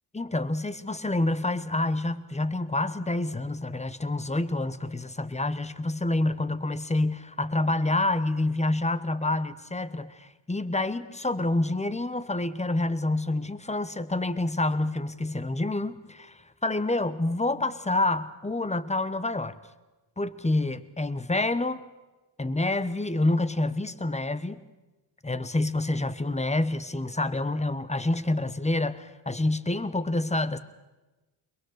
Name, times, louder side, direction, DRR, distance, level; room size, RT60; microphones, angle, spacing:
voice 1, 0.1-19.5 20.2-21.8 22.4-24.6 25.2-30.6, left 2 dB, 15° left, 14 dB, 1.1 m, -28 dB
22.5 x 20.0 x 6.7 m, 1.1 s
supercardioid pair, 60°, 48 cm